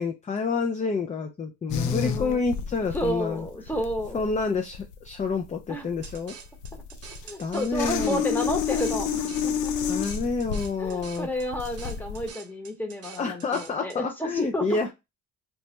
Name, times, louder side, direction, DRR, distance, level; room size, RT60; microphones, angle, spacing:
voice 1, 0.0-3.5 4.1-6.3 7.4-8.2 9.9-11.3 13.2-14.9, left 4 dB, 25° left, 5 dB, 0.4 m, -28 dB
sound 1, 1.7-12.3, left 7 dB, 85° left, 0.5 m, -31 dB
voice 2, 1.9-2.4 2.9-4.3 5.7-5.9 7.2-9.7 10.8-14.8, equal, 5° left, 4 dB, 1.0 m, -31 dB
sound 2, 6.0-14.0, right 6 dB, 55° right, 0.8 m, -46 dB
3.2 x 2.1 x 2.9 m, 0.23 s
cardioid pair, 90°, 30 cm